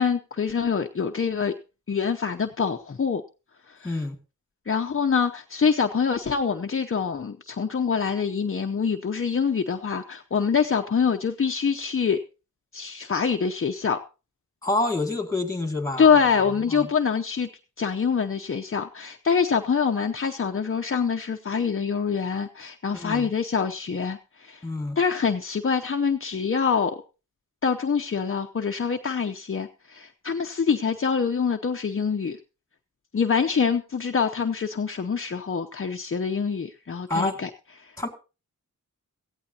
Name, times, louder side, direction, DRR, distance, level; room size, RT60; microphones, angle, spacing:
voice 1, 0.0-1.5 1.9-3.2 3.7-4.0 4.7-12.2 12.7-14.0 16.0-17.5 17.8-24.7 25.0-27.0 27.6-32.4 33.1-37.5 37.8-38.0, left 6 dB, 40° left, 5 dB, 0.8 m, -25 dB
voice 2, 3.8-4.2 14.6-16.1 16.7-16.9 22.9-23.3 24.6-25.0 37.1-37.4 38.0-38.1, left 2 dB, 10° left, 6 dB, 2.3 m, -27 dB
17.5 x 15.5 x 2.8 m, 0.31 s
wide cardioid pair, 115°, 33 cm